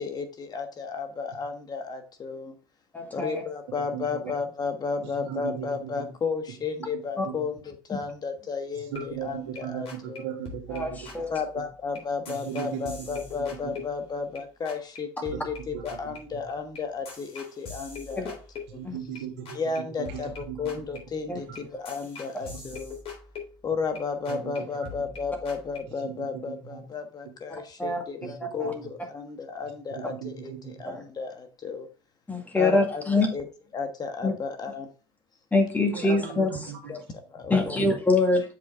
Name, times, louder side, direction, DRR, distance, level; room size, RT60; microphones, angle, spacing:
voice 1, 0.0-2.5 3.1-10.3 11.2-18.4 18.7-18.8 19.5-23.0 23.6-31.9 32.5-33.5 33.7-34.9 36.0-36.2 36.9-37.8, left 5 dB, 30° left, 6 dB, 1.3 m, -33 dB
voice 2, 2.9-3.4 7.2-7.3 7.9-8.0 10.7-11.3 18.2-18.3 18.8-18.9 21.3-21.4 27.5-28.0 28.6-28.7 30.8-31.0 32.3-33.3 34.2-34.3 35.5-36.8 37.5-38.4, left 2 dB, 10° left, 2 dB, 2.1 m, -25 dB
voice 3, 3.9-4.3 5.2-6.0 7.2-7.3 8.9-11.0 12.3-13.2 13.6-13.7 15.3-15.4 15.7-16.4 18.7-19.6 20.0-20.6 22.5-22.6 24.3-24.9 26.0-26.8 28.2-28.7 30.0-30.7 35.9-36.8, right 9 dB, 75° right, 1 dB, 2.4 m, -37 dB
sound 1, 8.9-9.6 9.9-10.2 10.5-14.4 14.7-15.0 15.3-19.2 19.5-19.8 20.1-24.0 24.3-24.6 24.9-25.8, left 5 dB, 45° left, 3.6 m, -43 dB
7.6 x 4.8 x 3.6 m, 0.34 s
hypercardioid pair, 90°, 13 cm